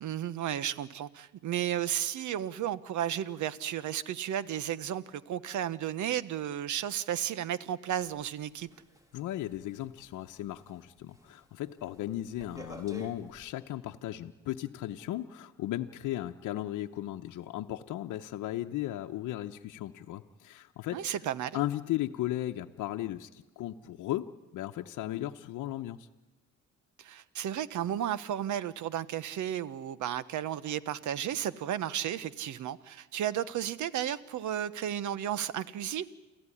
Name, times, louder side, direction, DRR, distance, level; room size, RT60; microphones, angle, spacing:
voice 1, 0.0-8.7 20.9-21.6 27.0-36.1, right 10 dB, 75° right, 16 dB, 1.1 m, -33 dB
sound 1, 8.0-10.8 11.1-11.4 11.8-13.5, left 1 dB, 10° right, 3.1 m, -49 dB
voice 2, 9.1-21.0 21.5-26.1, left 14 dB, 85° left, 4 dB, 0.9 m, -36 dB
28.5 x 15.0 x 10.0 m, 1.1 s
cardioid pair, 90°, 30 cm